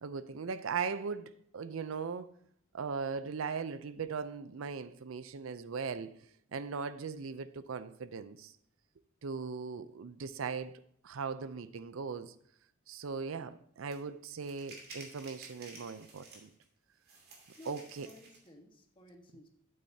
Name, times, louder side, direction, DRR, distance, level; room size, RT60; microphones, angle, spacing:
voice 1, 0.0-2.3 2.7-6.1 6.5-8.5 9.2-12.3 12.9-16.5 17.7-18.1, right 5 dB, 85° right, 0.5 m, -39 dB
sound 1, 13.9-14.0 14.4-16.6 17.0-18.5, right 3 dB, 55° right, 2.6 m, -52 dB
voice 2, 17.6-19.5, left 1 dB, 25° left, 1.4 m, -55 dB
12.0 x 8.7 x 2.8 m
head